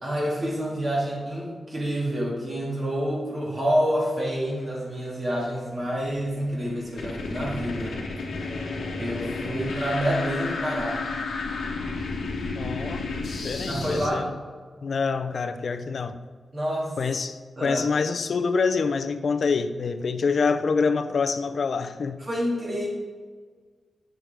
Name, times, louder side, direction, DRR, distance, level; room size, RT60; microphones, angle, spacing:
voice 1, 0.0-8.0 9.0-11.1 13.6-14.2 16.5-17.0 17.6-17.8 22.2-22.9, equal, 40° right, -5 dB, 1.9 m, -28 dB
sound 1, 6.0-14.1, left 3 dB, 85° left, 1.1 m, -32 dB
voice 2, 12.6-13.0 13.4-14.4 14.8-16.2 17.0-22.3, left 5 dB, 65° left, 10 dB, 0.4 m, -26 dB
7.4 x 6.2 x 3.4 m, 1.6 s
wide cardioid pair, 90°, 0 cm